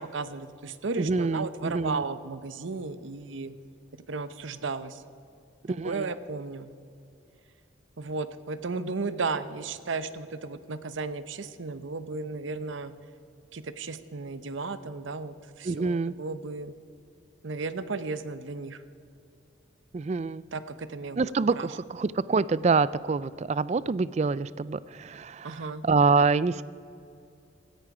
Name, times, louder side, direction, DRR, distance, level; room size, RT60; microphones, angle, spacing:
voice 1, 0.0-3.5 4.1-5.0 5.8-6.7 8.0-12.9 13.5-16.7 17.4-18.8 20.5-21.2 21.6-21.7 25.4-25.8, right 4 dB, 75° right, 13 dB, 0.7 m, -34 dB
voice 2, 1.0-2.0 5.6-6.1 15.6-16.1 19.9-20.4 21.2-26.6, right 4 dB, 35° right, 19 dB, 0.3 m, -26 dB
17.0 x 13.5 x 4.9 m, 2.6 s
head